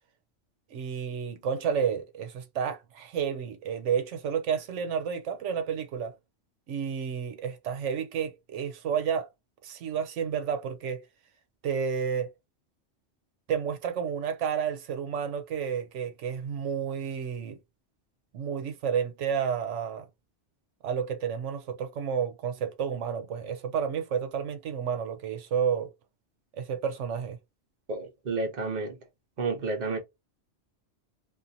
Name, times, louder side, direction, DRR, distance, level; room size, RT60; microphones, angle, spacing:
voice 1, 0.7-6.1 6.7-9.3 9.6-11.0 11.6-12.3 13.5-17.6 18.3-20.0 20.8-25.9 26.6-27.4, right 7 dB, 90° right, 1.0 m, -31 dB
voice 2, 27.9-29.0 29.4-30.0, right 3 dB, 40° right, 0.9 m, -30 dB
2.5 x 2.5 x 2.7 m
omnidirectional pair, 1.2 m